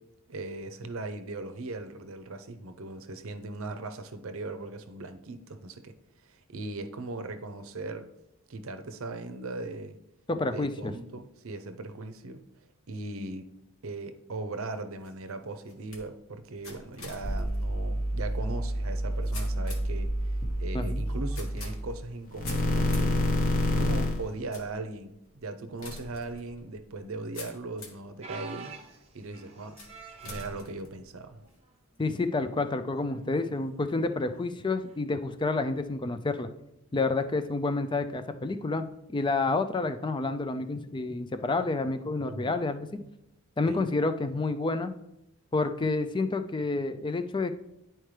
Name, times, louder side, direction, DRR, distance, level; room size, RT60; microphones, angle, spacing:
voice 1, 0.3-6.0 6.2-8.1 8.5-10.0 10.5-12.4 12.9-13.5 13.8-23.3 23.7-28.8 29.1-29.8 30.2-31.4 42.2-42.5 43.7-43.9, right 2 dB, 65° right, 8 dB, 0.6 m, -39 dB
voice 2, 10.3-10.9 20.7-21.1 32.0-36.5 36.9-38.8 39.1-43.0 43.6-44.9 45.5-47.5, left 3 dB, 20° left, 9 dB, 0.4 m, -29 dB
sound 1, 14.5-28.1 28.7-29.2 29.8-31.6, left 2 dB, 65° left, 1.4 m, -48 dB
sound 2, 17.2-22.0 22.3-24.4, equal, 40° left, 1.0 m, -28 dB
sound 3, 28.2-30.7 31.4-31.7 32.0-32.1 33.0-33.3 34.9-35.0, right 5 dB, 30° right, 0.8 m, -45 dB
10.5 x 4.4 x 3.3 m, 0.84 s
head